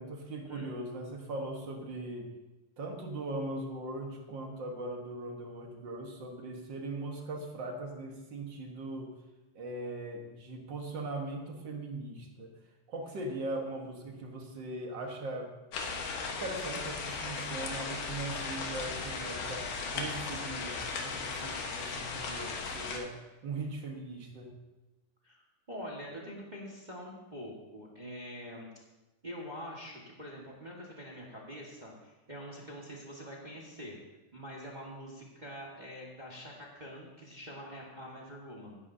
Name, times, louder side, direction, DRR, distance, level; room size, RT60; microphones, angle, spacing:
voice 1, 0.0-2.3 2.8-9.2 9.5-12.5 12.9-15.5 16.3-23.1 23.4-24.5, right 2 dB, 50° right, 2 dB, 1.5 m, -40 dB
sound 1, 15.7-23.0, left 4 dB, 85° left, 2.8 m, -37 dB
voice 2, 25.7-28.7 29.2-34.0 34.3-38.8, equal, 30° right, -3 dB, 0.8 m, -45 dB
16.5 x 10.0 x 2.7 m, 1.1 s
omnidirectional pair, 3.5 m